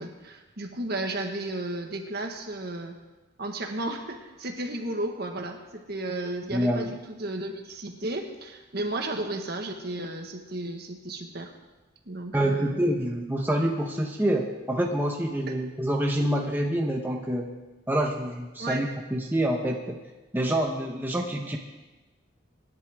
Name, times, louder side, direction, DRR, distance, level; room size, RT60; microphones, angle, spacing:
voice 1, 0.0-3.0 3.4-11.5 12.1-12.8 18.6-18.8, right 2 dB, 50° right, 4 dB, 1.6 m, -33 dB
voice 2, 6.5-6.9 12.3-17.5 17.9-20.0 20.3-21.6, right 1 dB, 10° right, 0 dB, 1.0 m, -27 dB
25.5 x 10.5 x 3.7 m, 1.1 s
head